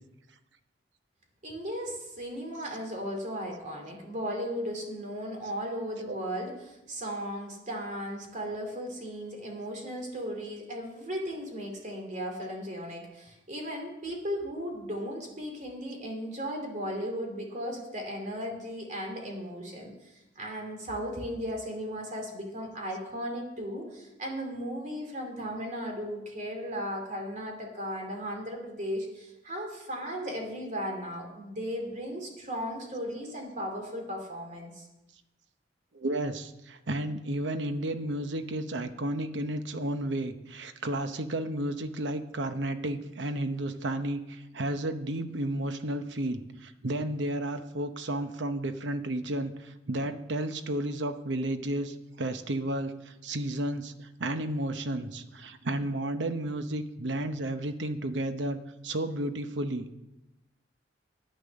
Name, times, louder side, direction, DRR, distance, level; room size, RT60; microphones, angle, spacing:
voice 1, 1.4-34.9, equal, 45° right, 2 dB, 2.8 m, -36 dB
voice 2, 35.9-58.6 58.8-59.9, right 1 dB, 70° right, 9 dB, 0.9 m, -32 dB
10.5 x 8.9 x 6.5 m, 0.94 s
head